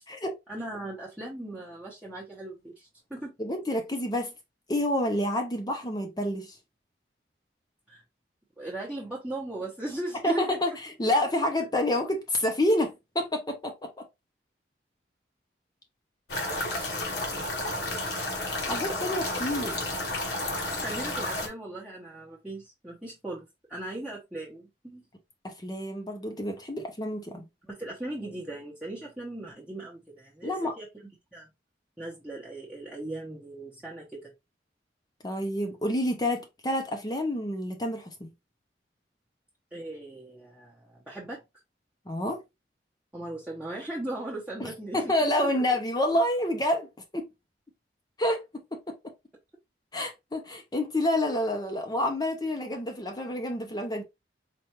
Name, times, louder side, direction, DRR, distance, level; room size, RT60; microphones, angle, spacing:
voice 1, 0.5-3.3 7.9-8.0 8.6-10.6 20.8-25.1 27.7-30.9 31.3-31.5 32.0-34.3 39.7-41.4 43.1-45.8, right 1 dB, 5° right, 0.9 m, -38 dB
voice 2, 3.4-4.3 4.7-6.6 10.2-14.0 18.7-19.8 25.4-27.4 30.4-30.7 35.2-38.3 42.1-42.4 44.6-46.9 47.1-47.3 48.2-48.4 48.7-48.9 49.9-54.0, left 1 dB, 20° left, 0.6 m, -28 dB
sound 1, 16.3-21.5, left 1 dB, 65° left, 1.1 m, -31 dB
4.4 x 2.5 x 2.9 m
head